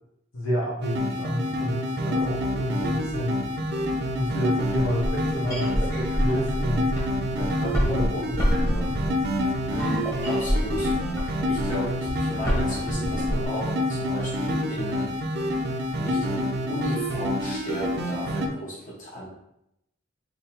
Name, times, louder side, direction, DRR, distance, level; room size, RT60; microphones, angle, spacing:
voice 1, 0.3-3.4 4.1-6.9 7.3-8.9, equal, 65° left, -5 dB, 1.2 m, -30 dB
sound 1, 0.8-18.5, left 1 dB, 55° right, 0.6 m, -28 dB
sound 2, 2.2-18.3, right 2 dB, 10° right, 0.4 m, -46 dB
sound 3, 4.6-13.4, equal, 15° left, 1.3 m, -28 dB
voice 2, 9.7-10.9 11.2-15.2 16.0-19.3, equal, 40° left, -6 dB, 1.4 m, -35 dB
3.8 x 2.9 x 4.3 m, 0.82 s
head